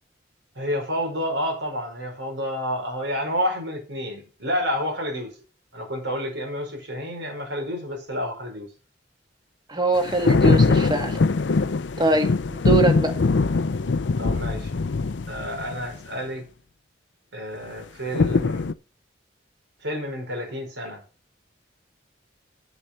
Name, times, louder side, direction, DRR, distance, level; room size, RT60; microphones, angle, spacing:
voice 1, 0.5-5.3 5.7-8.7 14.2-14.8 15.3-16.5 17.3-18.7 19.8-21.0, equal, 80° right, 5.0 m, -29 dB
voice 2, 9.7-11.2 12.0-13.1, right 2 dB, 25° right, 1.7 m, -23 dB
sound 1, 10.0-16.0 18.1-18.7, left 3 dB, 75° left, 0.5 m, -22 dB
8.3 x 7.5 x 6.6 m
head